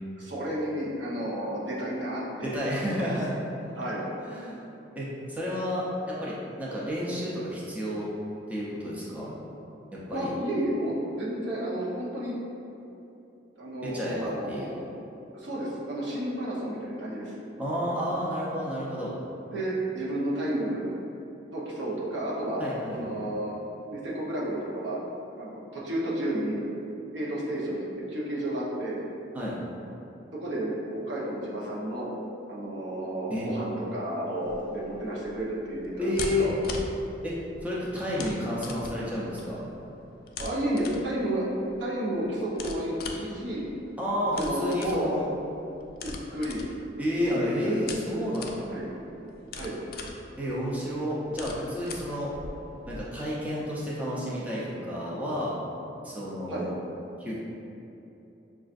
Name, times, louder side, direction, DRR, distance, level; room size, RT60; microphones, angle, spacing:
voice 1, 0.2-2.5 2.8-3.1 3.7-4.0 10.1-12.4 13.6-14.7 15.3-17.3 19.5-20.9 21.5-22.6 22.9-23.6 23.9-25.0 25.4-26.6 27.1-29.0 30.4-30.7 31.1-32.1 32.5-36.5 40.4-41.5 41.8-43.7 44.3-45.1 46.0-46.6 47.2-48.3 48.7-48.9 49.5-49.8 56.5-56.7, right 1 dB, 85° right, -6 dB, 0.8 m, -32 dB
voice 2, 2.4-3.4 3.6-3.8 4.2-4.6 5.0-8.0 8.5-9.3 9.9-10.3 13.8-14.8 17.6-19.1 22.6-23.2 29.3-29.6 33.3-33.5 36.0-36.5 37.2-37.3 37.6-39.7 44.0-45.3 47.0-48.7 50.4-52.3 52.9-55.6 56.0-56.7 57.2-57.4, equal, 10° right, -7 dB, 0.5 m, -31 dB
sound 1, 34.4-53.0, left 3 dB, 55° left, 0.3 m, -42 dB
5.4 x 2.4 x 2.5 m, 2.9 s
head